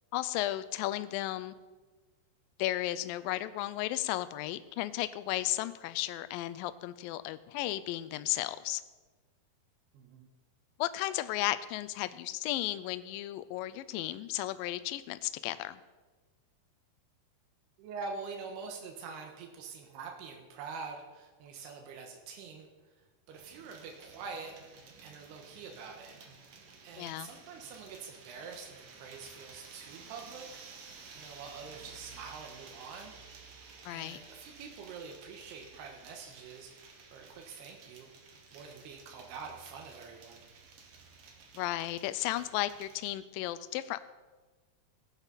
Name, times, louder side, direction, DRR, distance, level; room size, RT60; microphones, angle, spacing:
voice 1, 0.1-1.5 2.6-8.8 10.8-15.8 27.0-27.3 33.9-34.2 41.6-44.0, left 15 dB, 90° left, 13 dB, 2.0 m, -34 dB
voice 2, 9.9-10.3 17.8-22.7 23.3-24.5 25.0-26.2 26.8-30.5 30.8-33.1 33.9-38.1 38.5-40.4, right 5 dB, 90° right, 2 dB, 3.2 m, -45 dB
sound 1, 23.3-43.1, right 5 dB, 70° right, 1.4 m, -53 dB
16.5 x 8.9 x 4.1 m, 1.3 s
omnidirectional pair, 4.6 m